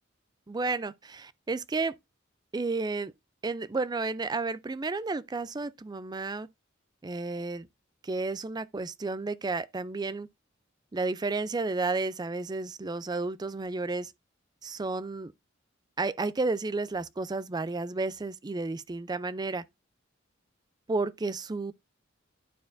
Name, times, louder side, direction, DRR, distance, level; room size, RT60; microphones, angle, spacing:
voice 1, 0.5-1.9 2.5-3.1 3.4-6.5 7.0-7.7 8.0-10.3 10.9-14.1 14.6-15.3 16.0-19.6 20.9-21.7, right 3 dB, 20° right, 0.4 m, -32 dB
11.5 x 4.4 x 2.5 m
head